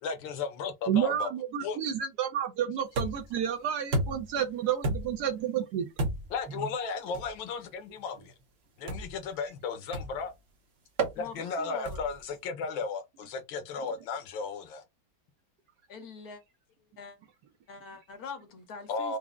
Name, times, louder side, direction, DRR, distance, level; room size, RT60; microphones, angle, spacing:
voice 1, 0.0-1.3 1.6-1.8 6.3-8.3 8.8-10.3 11.1-14.8 18.9-19.2, left 5 dB, 85° left, 1.6 m, -35 dB
voice 2, 0.9-5.9, right 9 dB, 70° right, 1.1 m, -30 dB
sound 1, 2.9-3.4 3.9-4.4 4.8-5.3 6.0-6.4 7.1-7.3 8.9-9.2 9.9-10.3 11.0-11.2 11.8-12.2, right 2 dB, 50° right, 0.8 m, -32 dB
voice 3, 11.2-12.0 15.9-16.4 17.0-17.2 17.7-19.2, left 5 dB, 60° left, 1.3 m, -44 dB
4.7 x 2.0 x 3.5 m
omnidirectional pair, 2.0 m